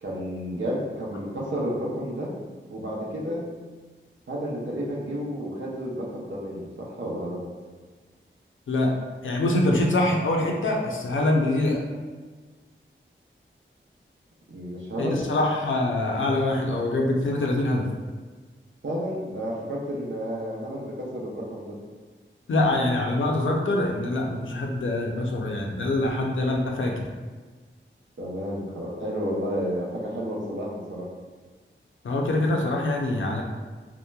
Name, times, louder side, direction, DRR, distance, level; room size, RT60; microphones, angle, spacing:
voice 1, 0.0-2.3 2.7-3.4 4.3-7.4 14.5-15.2 18.8-21.8 28.2-31.1, equal, 65° right, -4 dB, 0.7 m, -31 dB
voice 2, 9.2-11.8 15.0-17.9 22.5-27.0 32.0-33.4, left 2 dB, 75° left, 0 dB, 0.5 m, -24 dB
2.9 x 2.1 x 2.2 m, 1.4 s
wide cardioid pair, 50°, 20 cm